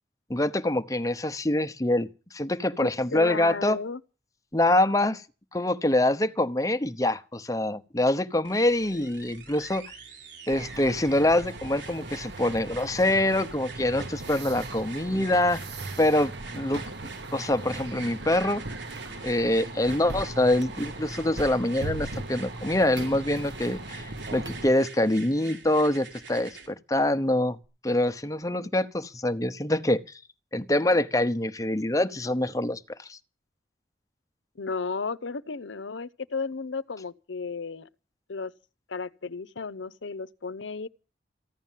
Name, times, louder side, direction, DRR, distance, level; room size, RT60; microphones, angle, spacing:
voice 1, 0.3-3.8 4.5-5.2 5.5-9.9 10.5-15.6 16.0-16.8 17.3-18.6 19.2-27.6 27.8-30.0 30.5-33.2, left 1 dB, 20° left, 0.9 m, -25 dB
voice 2, 2.8-4.0 34.6-37.9 38.3-38.5 38.9-40.9, left 4 dB, 85° left, 0.8 m, -34 dB
sound 1, 8.4-26.7 27.6-27.7, right 4 dB, 85° right, 4.8 m, -46 dB
sound 2, 10.5-24.7, right 2 dB, 65° right, 1.6 m, -38 dB
15.0 x 10.5 x 7.5 m
head